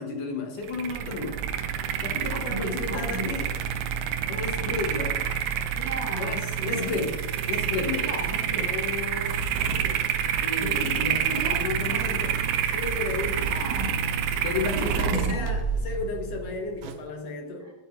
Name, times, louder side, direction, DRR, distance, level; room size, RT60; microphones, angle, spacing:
voice 1, 0.0-1.4 2.0-3.5 4.3-5.2 6.2-7.1 7.5-8.1 8.5-9.4 10.4-12.4 12.6-13.4 14.3-17.7, left 4 dB, 65° left, 2 dB, 3.0 m, -33 dB
sound 1, 0.6-17.0, right 8 dB, 75° right, 2.5 m, -28 dB
voice 2, 2.3-3.3 5.7-6.9 8.0-8.7 9.5-10.0 10.6-11.6 11.9-12.1 13.4-14.0 14.7-15.5 17.6-17.7, right 1 dB, 35° right, -2 dB, 2.7 m, -35 dB
20.5 x 9.0 x 3.3 m, 1.1 s
omnidirectional pair, 4.2 m